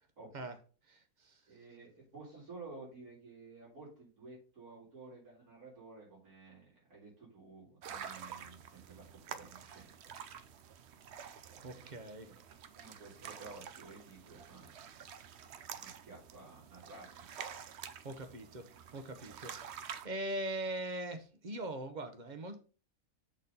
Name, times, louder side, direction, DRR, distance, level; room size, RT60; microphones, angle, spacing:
voice 1, 0.2-0.5 1.5-9.9 11.5-12.4 12.7-14.8 15.7-17.3, right 3 dB, 85° right, -5 dB, 4.1 m, -53 dB
voice 2, 0.9-1.4 11.6-12.3 18.0-18.6 18.9-22.6, right 1 dB, 35° right, 7 dB, 0.9 m, -41 dB
sound 1, 7.8-20.1, right 8 dB, 60° right, 0.7 m, -49 dB
6.4 x 4.1 x 5.3 m, 0.37 s
omnidirectional pair, 1.6 m